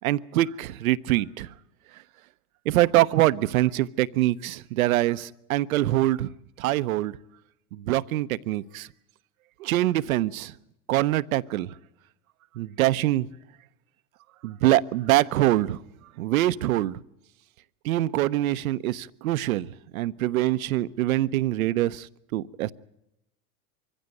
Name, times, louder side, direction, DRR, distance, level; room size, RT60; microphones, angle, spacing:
voice 1, 0.0-1.5 2.7-6.3 6.6-7.1 7.7-8.9 9.6-10.5 10.9-11.7 12.6-13.3 14.4-15.8 16.2-17.0 17.8-19.7 19.9-22.1 22.3-22.7, right 15 dB, 80° right, 16 dB, 0.8 m, -24 dB
23.5 x 15.5 x 9.1 m, 0.87 s
hypercardioid pair, 115°, 42 cm